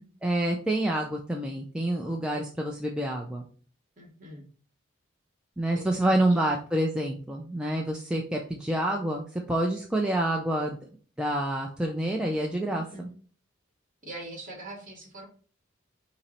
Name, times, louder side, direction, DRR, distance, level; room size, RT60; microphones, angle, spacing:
voice 1, 0.2-3.4 5.6-10.8 11.2-13.1, right 1 dB, 5° right, 0 dB, 0.3 m, -28 dB
voice 2, 4.0-4.5 5.7-6.2 12.7-13.1 14.0-15.3, right 1 dB, 40° right, 1 dB, 1.3 m, -43 dB
5.5 x 2.0 x 4.1 m, 0.42 s
head